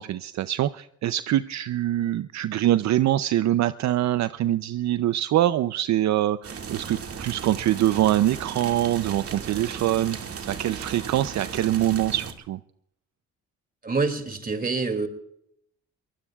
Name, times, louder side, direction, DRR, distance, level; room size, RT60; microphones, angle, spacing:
voice 1, 0.0-10.2 10.5-12.6, right 13 dB, 65° right, 13 dB, 0.6 m, -24 dB
sound 1, 6.4-12.3, right 6 dB, 50° right, 2.1 m, -36 dB
voice 2, 13.8-15.1, right 4 dB, 30° right, 8 dB, 2.5 m, -26 dB
23.0 x 20.0 x 2.4 m, 0.72 s
cardioid pair, 90°, 30 cm